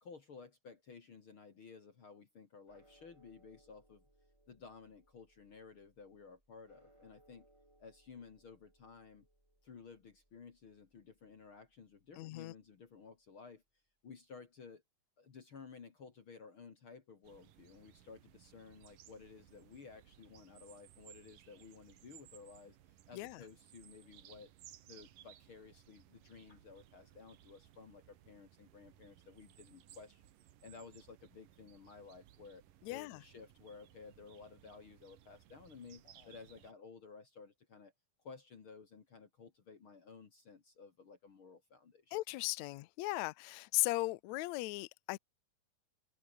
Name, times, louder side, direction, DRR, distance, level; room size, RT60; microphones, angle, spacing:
voice 1, 0.0-4.0 4.5-7.5 7.8-9.3 9.6-13.6 14.0-14.8 15.2-22.8 23.1-24.5 24.8-30.2 30.6-32.6 32.9-37.9 38.2-42.2, left 5 dB, 40° left, 2.5 m, -55 dB
sound 1, 2.7-13.1, right 1 dB, 10° right, 4.0 m, -71 dB
voice 2, 12.2-12.5 23.1-23.4 32.8-33.2 42.1-45.2, left 22 dB, 80° left, 1.6 m, -37 dB
sound 2, 17.2-36.7, right 12 dB, 80° right, 3.1 m, -62 dB
omnidirectional pair, 3.9 m